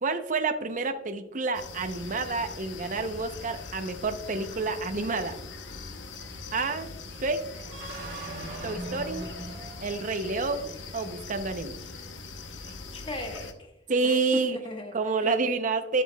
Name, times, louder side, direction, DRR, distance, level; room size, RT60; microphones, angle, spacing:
voice 1, 0.0-5.3 6.5-6.9 7.2-7.4 8.6-9.3 9.8-11.7 13.9-14.6 14.9-16.0, right 3 dB, 45° right, 8 dB, 0.6 m, -29 dB
sound 1, 1.5-13.5, left 4 dB, 80° left, 0.7 m, -42 dB
sound 2, 7.6-10.6, right 2 dB, 85° right, 2.0 m, -40 dB
voice 2, 12.5-13.7 14.0-15.3, left 1 dB, 30° left, 3 dB, 1.1 m, -39 dB
11.0 x 7.5 x 2.2 m, 0.86 s
head